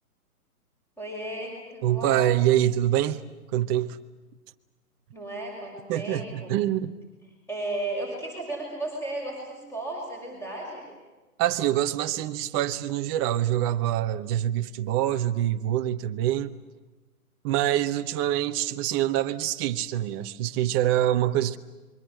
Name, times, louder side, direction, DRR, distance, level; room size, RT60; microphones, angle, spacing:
voice 1, 1.0-2.3 5.1-6.5 7.5-10.9, right 1 dB, 5° left, 6.1 m, -34 dB
voice 2, 1.8-3.2 3.5-4.0 5.9-6.9 11.4-16.5 17.4-21.6, right 12 dB, 15° right, 0.8 m, -25 dB
27.5 x 23.5 x 7.6 m
hypercardioid pair, 150°, 46 cm